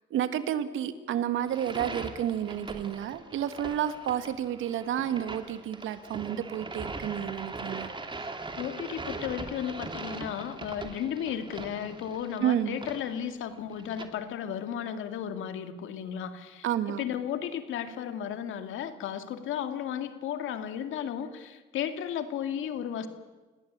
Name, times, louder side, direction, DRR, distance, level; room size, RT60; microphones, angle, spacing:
voice 1, 0.1-7.9 12.4-12.8 16.6-17.0, right 10 dB, 85° right, 11 dB, 1.8 m, -30 dB
sound 1, 1.4-14.1, right 3 dB, 25° right, 2.7 m, -41 dB
voice 2, 8.6-23.1, left 9 dB, 85° left, 8 dB, 2.4 m, -34 dB
29.0 x 18.0 x 8.8 m, 1.2 s
cardioid pair, 90°, 20 cm